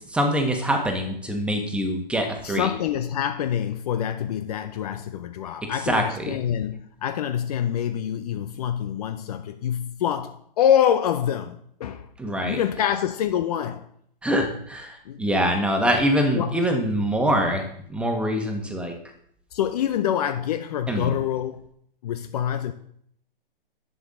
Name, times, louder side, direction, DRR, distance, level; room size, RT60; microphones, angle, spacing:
voice 1, 0.1-2.7 5.6-6.4 12.2-12.6 14.2-19.0 20.9-21.1, equal, 5° right, 1.5 m, -24 dB
voice 2, 2.4-13.9 15.0-15.2 16.3-16.6 19.5-21.7 22.0-22.7, left 9 dB, 40° left, 0.8 m, -26 dB
11.0 x 9.5 x 3.8 m
figure-of-eight pair, 130°, 29 cm